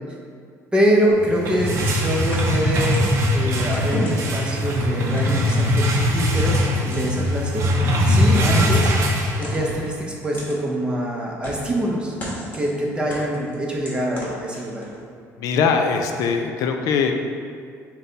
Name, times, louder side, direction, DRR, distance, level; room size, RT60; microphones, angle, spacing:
voice 1, 0.7-3.1 3.3-7.7 8.1-8.9 9.4-12.1 12.5-14.9, equal, 15° right, -2 dB, 0.7 m, -24 dB
sound 1, 1.2-9.9, left 1 dB, 50° right, 0.6 m, -21 dB
sound 2, 2.3-3.2 3.7-4.4 5.1-6.1 6.8-7.3 8.2-8.8 9.4-9.9 10.3-10.6 11.4-11.8 12.2-12.7 13.1-15.0, equal, 30° left, 1.1 m, -34 dB
voice 2, 15.4-17.1, left 5 dB, 70° left, 4 dB, 0.4 m, -21 dB
5.6 x 2.2 x 3.9 m, 2.2 s
cardioid pair, 125°, 6 cm